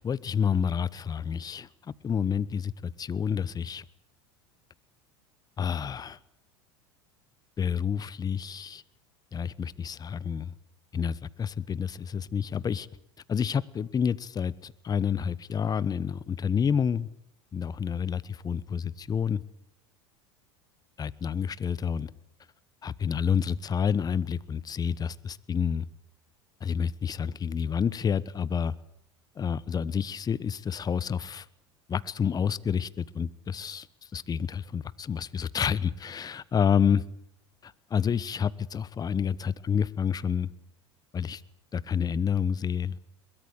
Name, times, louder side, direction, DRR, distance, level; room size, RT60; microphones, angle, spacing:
voice 1, 0.0-1.7 2.0-3.8 5.6-6.2 7.6-8.8 9.3-10.5 10.9-12.9 13.3-17.1 17.5-19.4 21.0-22.1 22.8-25.9 26.6-28.7 29.4-31.4 31.9-33.9 34.1-37.0 37.6-40.5 41.1-41.4 41.7-43.0, left 7 dB, 25° left, 20 dB, 1.1 m, -29 dB
22.5 x 21.5 x 8.2 m, 0.73 s
hypercardioid pair, 95°, 15 cm